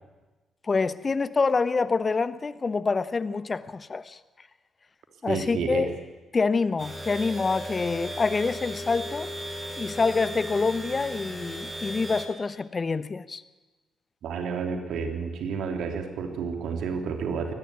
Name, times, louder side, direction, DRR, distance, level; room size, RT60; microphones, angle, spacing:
voice 1, 0.7-4.2 5.2-5.9 6.3-9.3 9.8-13.4, left 4 dB, 35° left, 15 dB, 1.1 m, -26 dB
voice 2, 5.3-5.9 14.2-17.5, right 5 dB, 60° right, 4 dB, 3.4 m, -30 dB
sound 1, 6.8-12.2, equal, 20° right, 7.1 m, -36 dB
23.0 x 19.0 x 9.8 m, 1.2 s
figure-of-eight pair, 40°, 0 cm